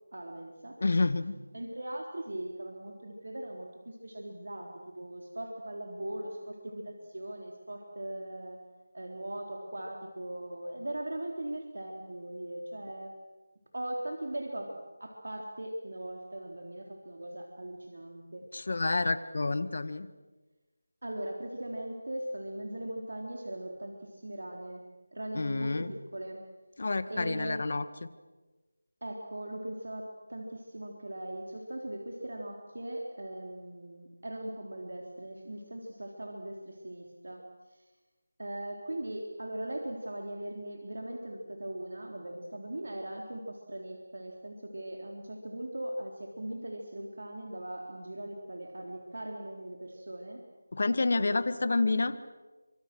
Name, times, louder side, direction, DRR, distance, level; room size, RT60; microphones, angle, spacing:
voice 1, 0.1-0.8 1.5-8.6 8.9-13.1 13.7-18.5 21.0-26.4 27.1-27.6 29.0-37.5 37.7-37.8 38.4-50.4 51.2-51.4, right 1 dB, 80° right, 1 dB, 3.8 m, -40 dB
voice 2, 0.8-1.4 18.5-20.1 25.3-25.9 26.8-27.9 50.7-52.2, left 3 dB, 50° left, 12 dB, 1.6 m, -28 dB
29.0 x 25.5 x 6.3 m, 1.2 s
figure-of-eight pair, 170°, 0 cm